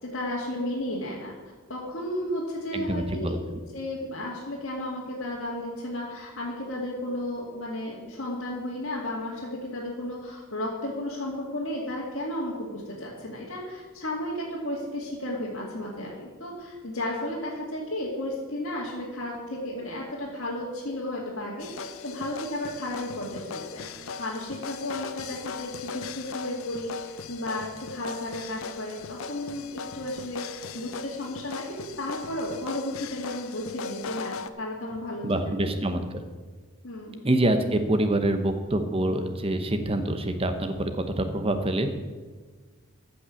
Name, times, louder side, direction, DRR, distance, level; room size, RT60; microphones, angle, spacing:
voice 1, 0.0-1.3 1.7-3.3 3.7-35.5 36.8-37.2, left 1 dB, 60° left, -7 dB, 2.3 m, -33 dB
voice 2, 2.7-3.4 35.2-36.2 37.2-41.9, right 1 dB, 25° right, 8 dB, 1.0 m, -26 dB
sound 1, 21.6-34.5, left 5 dB, 80° left, 0.6 m, -39 dB
14.5 x 5.6 x 7.3 m, 1.4 s
head